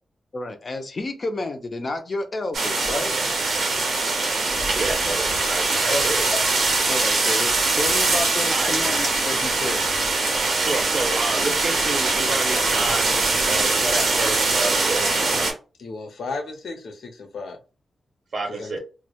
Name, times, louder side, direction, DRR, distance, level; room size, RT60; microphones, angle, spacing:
voice 1, 0.3-3.1 5.9-6.0 6.9-9.8, left 2 dB, 35° left, 0.4 m, -30 dB
sound 1, 2.5-15.5, right 3 dB, 85° right, 0.7 m, -22 dB
voice 2, 4.7-6.2 8.5-8.7 10.5-13.1 13.5-15.2 18.3-18.8, right 3 dB, 45° right, 0.6 m, -29 dB
voice 3, 15.8-17.6 18.5-18.8, left 3 dB, 85° left, 0.6 m, -34 dB
2.1 x 2.0 x 2.8 m
wide cardioid pair, 180°, 0 cm